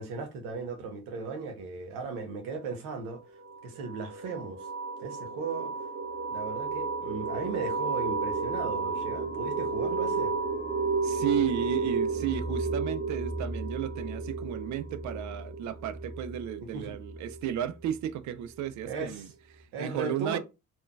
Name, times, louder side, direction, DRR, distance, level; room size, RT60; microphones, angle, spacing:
voice 1, 0.0-4.7 5.0-5.7 6.3-10.3 16.6-17.0 18.8-19.3 19.7-20.4, right 4 dB, 65° right, 1.0 m, -37 dB
sound 1, 3.4-17.8, right 4 dB, 30° right, 0.8 m, -32 dB
voice 2, 11.0-19.3 19.6-20.4, right 10 dB, 45° right, 0.4 m, -34 dB
3.6 x 2.3 x 2.3 m
figure-of-eight pair, 45°, 41 cm